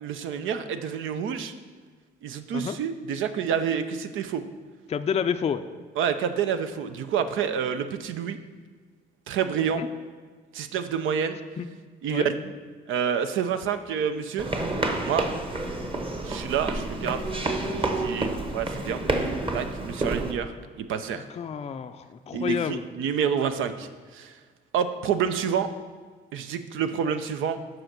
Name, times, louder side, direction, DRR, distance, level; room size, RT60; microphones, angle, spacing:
voice 1, 0.0-1.5 2.2-4.4 6.0-8.4 9.3-9.8 10.5-11.4 12.0-12.5 12.9-14.5 15.0-15.3 16.2-17.2 17.8-19.0 19.5-20.5 20.8-21.2 22.3-24.4 24.7-25.7 26.3-27.6, right 7 dB, 80° right, 9 dB, 0.6 m, -28 dB
voice 2, 4.9-5.6 9.8-9.9 11.6-11.7 12.1-12.3 21.3-22.8, left 7 dB, 30° left, 8 dB, 0.4 m, -29 dB
sound 1, 14.4-20.3, right 2 dB, 25° right, 1.0 m, -29 dB
7.8 x 5.1 x 6.0 m, 1.5 s
cardioid pair, 90°, 20 cm